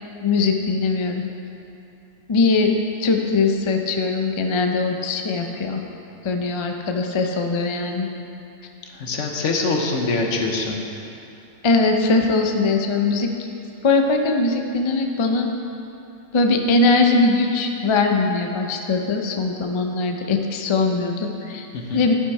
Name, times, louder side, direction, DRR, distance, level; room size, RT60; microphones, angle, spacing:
voice 1, 0.2-1.3 2.3-2.7 3.0-5.8 6.2-8.1 11.6-13.3 13.8-15.5 16.3-21.7 21.9-22.1, left 3 dB, 50° left, 3 dB, 0.3 m, -21 dB
voice 2, 8.9-10.8 21.7-22.0, left 3 dB, 65° left, 2 dB, 1.2 m, -24 dB
11.5 x 5.6 x 4.7 m, 2.8 s
omnidirectional pair, 1.4 m